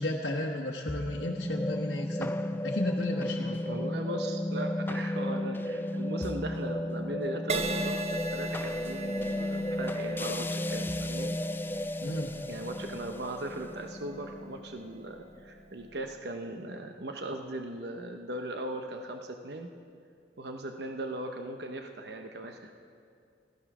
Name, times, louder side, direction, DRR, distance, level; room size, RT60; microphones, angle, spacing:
voice 1, 0.0-2.4 2.6-3.6 12.0-12.4, left 1 dB, 75° left, -3 dB, 1.2 m, -33 dB
sound 1, 0.9-15.3, left 1 dB, 10° left, 0.3 m, -34 dB
voice 2, 3.6-11.4 12.5-19.7 20.4-22.7, right 1 dB, 65° right, 5 dB, 0.9 m, -38 dB
Crash cymbal, 7.5-15.1 15.8-16.1, right 2 dB, 40° right, 0.8 m, -39 dB
15.0 x 14.5 x 6.1 m, 2.3 s
head